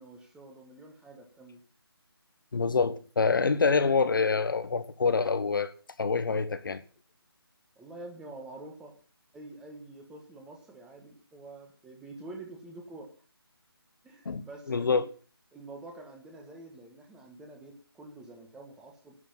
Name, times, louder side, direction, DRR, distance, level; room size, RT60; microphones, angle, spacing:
voice 1, 0.0-1.6 7.7-8.9 9.3-13.1 14.0-15.0 15.5-19.2, right 2 dB, 5° right, 1.5 m, -47 dB
voice 2, 2.5-5.7 6.0-6.8 14.2-15.1, left 4 dB, 55° left, 1.2 m, -26 dB
11.0 x 6.7 x 9.4 m
figure-of-eight pair, 160°, 13 cm